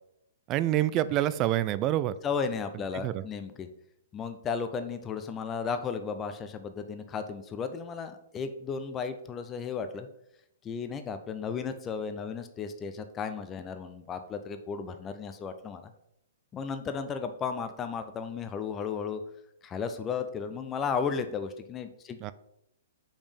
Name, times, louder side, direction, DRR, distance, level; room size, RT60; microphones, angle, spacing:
voice 1, 0.5-2.1 3.0-3.2 22.2-22.3, right 13 dB, 30° right, 16 dB, 0.3 m, -26 dB
voice 2, 2.2-3.7 4.1-10.1 10.6-15.9 16.5-19.2 19.6-22.2, left 6 dB, 20° left, 9 dB, 0.6 m, -34 dB
5.2 x 5.1 x 5.2 m, 0.79 s
figure-of-eight pair, 115°, 0 cm